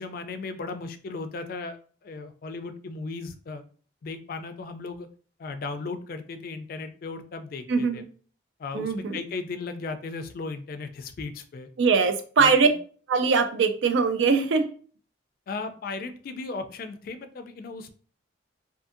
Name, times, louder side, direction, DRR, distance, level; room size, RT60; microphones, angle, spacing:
voice 1, 0.0-3.6 4.0-5.1 5.4-8.0 8.6-11.7 12.4-12.7 15.5-17.9, left 3 dB, 50° left, 9 dB, 0.3 m, -36 dB
voice 2, 7.7-8.0 8.7-9.2 11.8-12.7 13.1-14.6, right 5 dB, 85° right, 8 dB, 0.4 m, -22 dB
2.6 x 2.5 x 2.6 m, 0.42 s
head